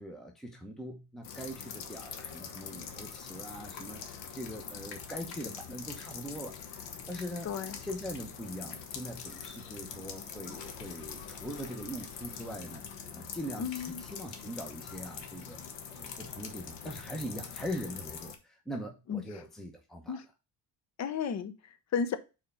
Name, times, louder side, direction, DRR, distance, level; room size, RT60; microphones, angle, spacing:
voice 1, 0.0-7.5 7.8-12.8 13.1-15.6 15.9-20.2, equal, ahead, 0.8 m, -42 dB
sound 1, 1.2-18.4, left 7 dB, 90° left, 1.3 m, -44 dB
voice 2, 7.4-7.8 13.6-14.0 19.1-19.2 20.1-20.2 21.0-22.2, left 6 dB, 40° left, 0.8 m, -33 dB
4.7 x 4.4 x 5.5 m
cardioid pair, 135°, 42 cm